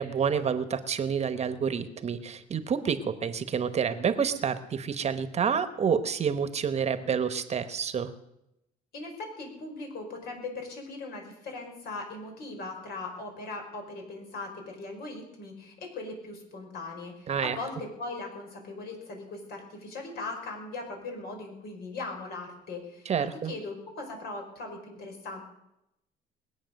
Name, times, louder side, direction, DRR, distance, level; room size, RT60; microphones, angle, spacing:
voice 1, 0.0-8.1 17.3-17.6 23.0-23.5, right 7 dB, 40° right, 11 dB, 1.1 m, -28 dB
voice 2, 8.9-25.4, left 3 dB, 70° left, 2 dB, 5.0 m, -39 dB
21.0 x 8.7 x 6.5 m, 0.85 s
cardioid pair, 110°, 17 cm